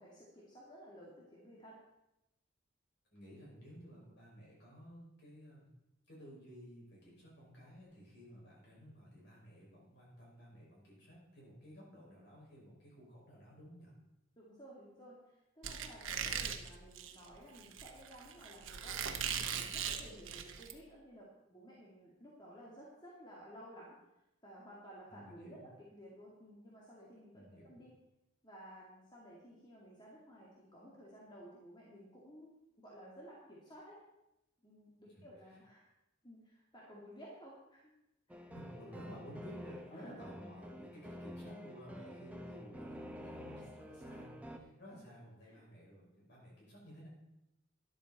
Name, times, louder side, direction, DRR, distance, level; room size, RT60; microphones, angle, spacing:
voice 1, 0.0-1.8 14.4-24.0 24.4-27.9 28.4-32.5 32.8-34.0 34.6-35.9 36.2-37.9 38.3-38.5 38.7-39.0 39.9-40.2 44.9-45.6, equal, 20° left, -5 dB, 2.3 m, -55 dB
voice 2, 3.1-5.7 6.1-13.9 16.5-16.6 20.1-20.2 25.1-25.7 27.3-27.8 35.0-35.6 38.5-47.1, equal, 55° left, -4 dB, 5.8 m, -54 dB
Squeak, 15.6-20.7, right 7 dB, 80° right, 1.1 m, -40 dB
sound 1, 38.3-44.6, equal, 5° right, 0.9 m, -49 dB
12.5 x 11.0 x 4.3 m, 0.90 s
head